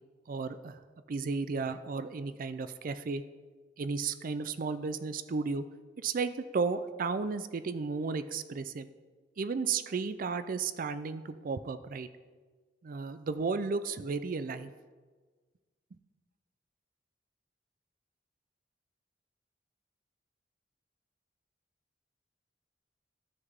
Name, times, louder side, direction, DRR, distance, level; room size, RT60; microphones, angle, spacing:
voice 1, 0.3-0.8 1.1-3.2 3.8-5.6 6.0-8.9 9.4-12.1 12.8-14.7, right 4 dB, 50° right, 12 dB, 0.4 m, -33 dB
13.5 x 6.5 x 3.6 m, 1.4 s
head